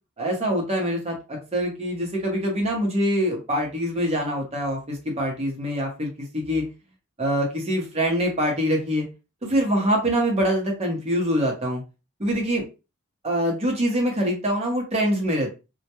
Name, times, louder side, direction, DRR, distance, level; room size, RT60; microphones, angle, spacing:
voice 1, 0.2-6.7 7.2-9.1 9.4-11.8 12.2-12.6 13.2-15.5, equal, 30° right, 0 dB, 0.8 m, -24 dB
2.2 x 2.1 x 2.9 m, 0.29 s
head